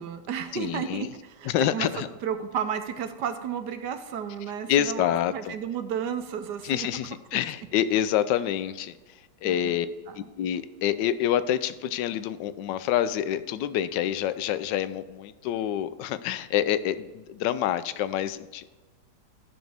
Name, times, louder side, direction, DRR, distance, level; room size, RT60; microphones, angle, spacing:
voice 1, 0.0-1.9 2.2-6.9 9.4-9.7 10.1-10.3, right 8 dB, 70° right, 9 dB, 1.2 m, -33 dB
voice 2, 0.5-1.1 1.4-2.1 4.7-5.5 6.6-9.9 10.1-18.7, left 11 dB, 75° left, 14 dB, 1.2 m, -27 dB
13.0 x 6.1 x 3.5 m, 1.2 s
omnidirectional pair, 2.0 m